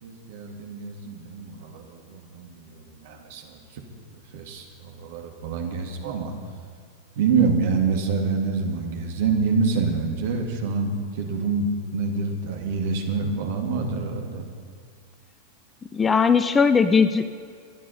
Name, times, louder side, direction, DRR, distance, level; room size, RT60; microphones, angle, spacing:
voice 1, 0.0-3.8 4.1-6.3 7.2-14.4, right 4 dB, 55° right, 2 dB, 2.2 m, -26 dB
voice 2, 15.9-17.3, left 5 dB, 15° left, 12 dB, 0.6 m, -19 dB
24.5 x 11.0 x 4.2 m, 2.1 s
figure-of-eight pair, 90°, 0 cm